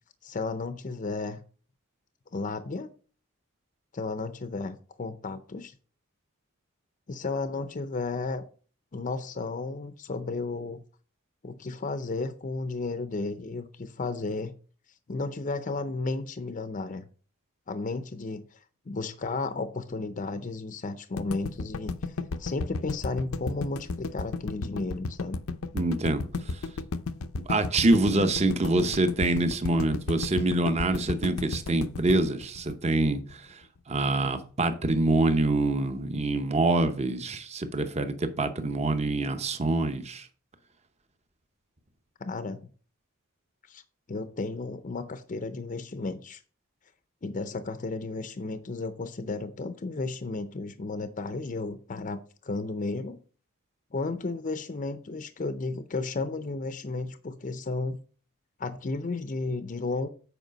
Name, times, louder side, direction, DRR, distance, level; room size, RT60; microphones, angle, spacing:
voice 1, 0.2-1.4 2.3-2.9 3.9-5.7 7.1-8.4 8.9-10.8 11.4-14.5 15.1-17.1 17.7-18.6 18.9-22.1 22.4-25.4 42.2-42.7 43.7-43.8 44.1-46.4 47.2-53.2 53.9-58.0 58.6-60.1, left 3 dB, 35° left, 0.5 m, -33 dB
sound 1, 21.2-33.3, left 3 dB, 80° left, 0.6 m, -33 dB
voice 2, 25.7-26.2 27.5-33.4 33.9-40.3, right 2 dB, 30° right, 0.8 m, -25 dB
8.0 x 4.8 x 5.1 m
head